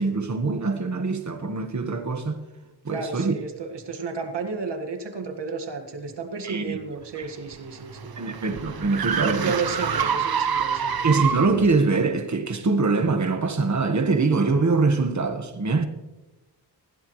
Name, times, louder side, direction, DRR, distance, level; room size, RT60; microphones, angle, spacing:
voice 1, 0.0-2.4 2.8-3.3 6.4-6.8 7.2-7.3 8.2-10.1 11.0-15.8, right 3 dB, 40° right, 1.5 m, -23 dB
voice 2, 2.9-8.2 9.2-11.1, right 4 dB, 70° right, 1.9 m, -32 dB
sound 1, 7.2-11.7, right 7 dB, 55° right, 1.0 m, -27 dB
20.5 x 15.5 x 3.2 m
wide cardioid pair, 125°, 42 cm